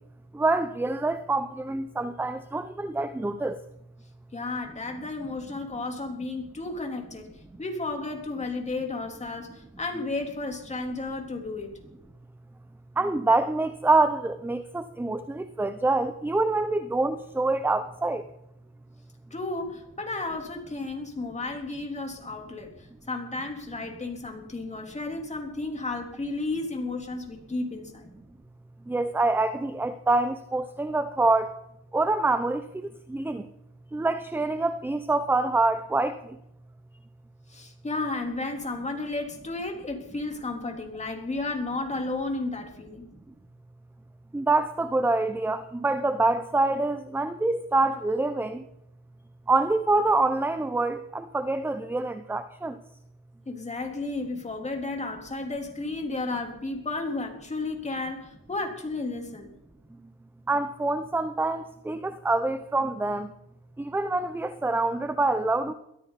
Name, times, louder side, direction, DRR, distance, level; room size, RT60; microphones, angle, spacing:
voice 1, 0.3-3.6 13.0-18.2 28.9-31.5 31.9-32.6 33.1-33.5 33.9-36.2 44.3-48.6 49.5-52.8 60.5-63.3 63.8-65.7, right 2 dB, 5° right, 11 dB, 0.6 m, -26 dB
voice 2, 4.3-7.3 7.6-11.8 19.3-28.1 37.5-43.1 53.5-59.5, left 2 dB, 15° left, 2 dB, 3.6 m, -33 dB
22.0 x 13.5 x 4.1 m, 0.82 s
cardioid pair, 120°, 47 cm